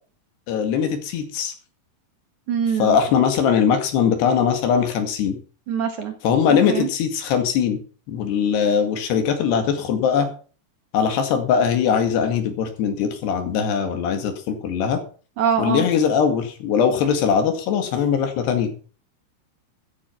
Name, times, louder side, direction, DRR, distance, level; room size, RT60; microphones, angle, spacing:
voice 1, 0.5-1.5 2.8-5.4 6.2-7.8 8.1-10.3 10.9-15.0 15.6-18.7, left 7 dB, 80° left, 7 dB, 4.2 m, -21 dB
voice 2, 2.5-3.0 5.7-6.1 6.7-6.9 15.4-15.8, right 7 dB, 55° right, 6 dB, 2.6 m, -23 dB
14.5 x 8.7 x 5.8 m, 0.39 s
omnidirectional pair, 4.7 m